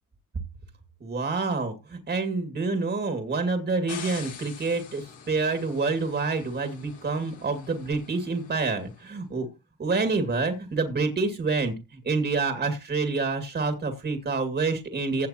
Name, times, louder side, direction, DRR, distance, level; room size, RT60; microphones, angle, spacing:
voice 1, 1.0-9.5 9.8-15.3, right 3 dB, 35° right, 6 dB, 2.2 m, -27 dB
sound 1, 3.9-9.0, left 7 dB, 85° left, 4.6 m, -45 dB
16.5 x 7.4 x 2.9 m, 0.26 s
cardioid pair, 90°, 30 cm